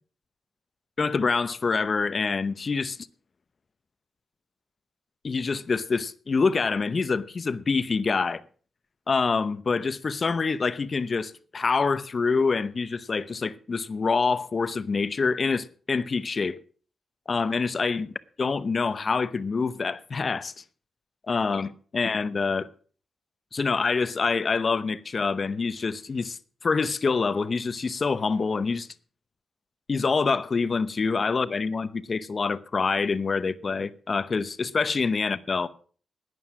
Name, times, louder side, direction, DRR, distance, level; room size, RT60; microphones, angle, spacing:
voice 1, 1.0-3.0 5.2-8.4 9.1-16.6 17.3-20.5 21.3-22.7 23.5-28.9 29.9-35.7, left 4 dB, 45° left, 0.8 m, -26 dB
11.0 x 9.4 x 6.1 m
cardioid pair, 65°, 0 cm